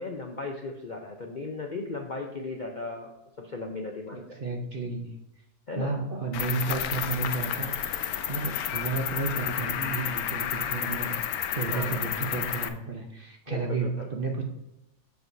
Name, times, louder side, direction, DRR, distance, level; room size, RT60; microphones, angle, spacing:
voice 1, 0.0-4.4 5.7-5.9 11.0-11.2 11.7-12.1 13.5-14.1, left 3 dB, 50° left, 1 dB, 0.6 m, -36 dB
voice 2, 4.1-5.1 5.8-8.0 8.3-14.4, right 3 dB, 45° right, 2 dB, 0.8 m, -32 dB
Cricket, 6.3-12.7, left 9 dB, 75° left, 1.1 m, -31 dB
13.5 x 4.7 x 2.7 m, 0.91 s
omnidirectional pair, 1.7 m